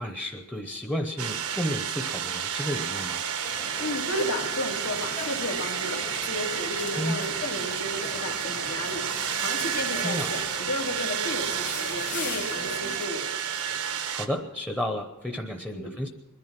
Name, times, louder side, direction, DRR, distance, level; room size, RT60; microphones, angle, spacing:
voice 1, 0.0-3.2 7.0-7.2 10.0-10.4 13.8-16.1, equal, 5° left, 4 dB, 0.8 m, -32 dB
sound 1, 1.2-14.3, right 8 dB, 85° right, 1.0 m, -31 dB
sound 2, 3.4-13.1, left 4 dB, 35° left, 1.1 m, -41 dB
voice 2, 3.8-13.3 15.7-16.0, left 1 dB, 80° left, 2 dB, 2.2 m, -33 dB
21.0 x 11.0 x 5.9 m, 1.1 s
head